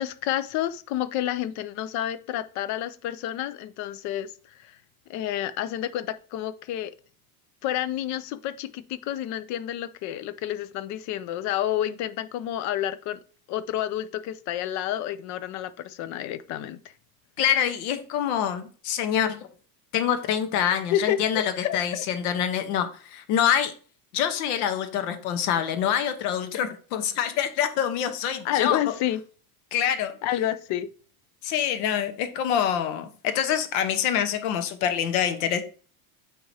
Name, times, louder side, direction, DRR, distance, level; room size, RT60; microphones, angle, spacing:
voice 1, 0.0-4.3 4.6-4.7 5.1-6.9 7.6-13.2 13.5-16.8 20.9-22.1 28.4-29.2 30.2-30.9, left 12 dB, 40° left, 0.4 m, -29 dB
voice 2, 17.4-19.4 19.9-23.7 24.1-28.8 29.7-30.1 31.4-35.6, left 9 dB, 70° left, 1.1 m, -25 dB
7.7 x 4.7 x 2.8 m
supercardioid pair, 145°, 46 cm